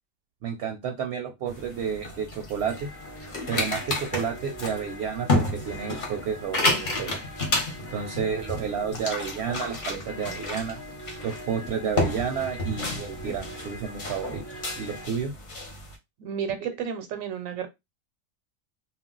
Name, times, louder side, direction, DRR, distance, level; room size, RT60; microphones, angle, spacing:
voice 1, 0.4-2.9 3.5-7.2 7.9-10.8 11.2-14.4 14.8-15.3, right 7 dB, 65° right, 0.7 m, -31 dB
sound 1, 1.5-16.0, left 2 dB, 45° left, 0.8 m, -31 dB
sound 2, 2.6-15.1, equal, 20° left, 0.4 m, -43 dB
voice 2, 16.2-17.7, right 7 dB, 85° right, 1.0 m, -32 dB
2.3 x 2.1 x 3.8 m
omnidirectional pair, 1.4 m